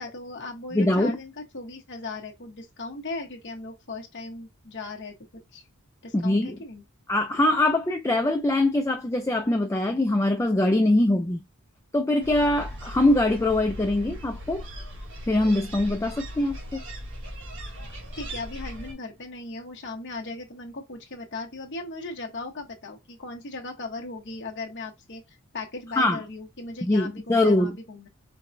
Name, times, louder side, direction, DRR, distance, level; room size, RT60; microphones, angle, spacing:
voice 1, 0.0-5.6 6.0-6.8 18.1-28.1, left 3 dB, 55° left, 1.1 m, -38 dB
voice 2, 0.7-1.2 6.1-6.6 7.1-11.4 11.9-14.7 15.3-16.8 26.0-26.2 26.8-27.8, left 1 dB, 15° left, 0.4 m, -23 dB
sound 1, 12.2-18.9, equal, 60° right, 1.4 m, -38 dB
4.6 x 2.2 x 2.6 m
head